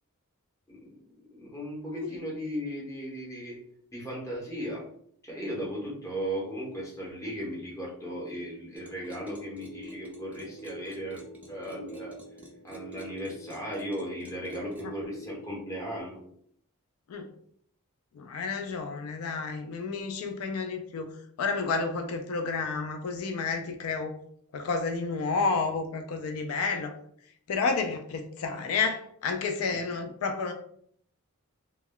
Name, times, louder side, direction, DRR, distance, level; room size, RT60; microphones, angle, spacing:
voice 1, 0.7-3.6 3.9-4.9 5.2-12.2 12.6-16.2 29.7-29.8, equal, 15° left, -4 dB, 0.9 m, -36 dB
sound 1, 8.7-16.0, right 1 dB, 5° right, 0.3 m, -46 dB
voice 2, 18.1-24.2 24.5-26.9 27.5-30.5, left 4 dB, 75° left, 5 dB, 0.3 m, -30 dB
2.2 x 2.1 x 3.5 m, 0.65 s
head